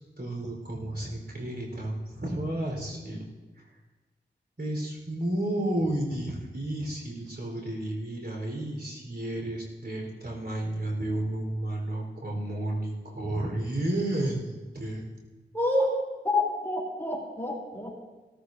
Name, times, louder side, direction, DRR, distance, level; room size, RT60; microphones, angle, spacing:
voice 1, 0.2-3.3 4.6-15.1, right 1 dB, 60° right, -1 dB, 4.1 m, -32 dB
voice 2, 15.5-15.9 16.2-18.0, left 2 dB, 10° left, -3 dB, 3.3 m, -28 dB
18.0 x 13.5 x 2.7 m, 1.2 s
wide cardioid pair, 60°, 19 cm